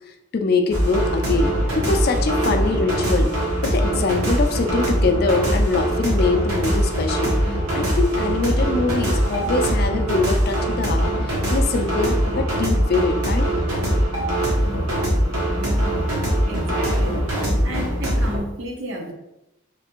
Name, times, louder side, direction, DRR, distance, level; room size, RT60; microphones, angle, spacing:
voice 1, 0.3-3.3 3.6-7.3 7.7-13.5, left 3 dB, 45° left, 6 dB, 0.3 m, -23 dB
sound 1, 0.7-18.4, equal, 85° right, 1.1 m, -22 dB
voice 2, 15.6-16.1 16.5-17.2 17.6-19.1, right 1 dB, 65° right, 0 dB, 0.8 m, -32 dB
3.3 x 3.2 x 2.9 m, 0.89 s
head